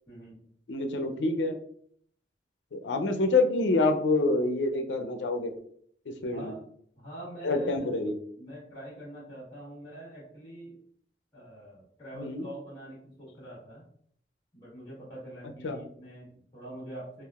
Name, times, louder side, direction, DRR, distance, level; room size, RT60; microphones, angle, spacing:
voice 1, 0.1-0.4 6.3-6.6 7.0-7.9 8.3-10.8 11.3-13.8 14.5-17.2, right 1 dB, 20° left, -7 dB, 1.1 m, -44 dB
voice 2, 0.7-1.6 2.7-5.5 6.1-6.5 7.4-8.1 12.2-12.5 15.6-15.8, left 2 dB, 85° left, 6 dB, 0.5 m, -27 dB
3.4 x 2.4 x 2.3 m, 0.62 s
head